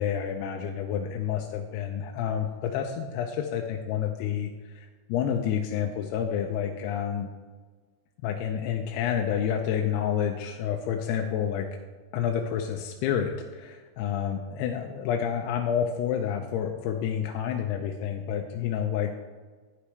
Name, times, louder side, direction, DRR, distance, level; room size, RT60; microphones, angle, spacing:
voice 1, 0.0-7.3 8.2-11.7 12.1-19.1, left 8 dB, 85° left, 2 dB, 2.6 m, -29 dB
11.5 x 10.5 x 3.3 m, 1.4 s
omnidirectional pair, 4.9 m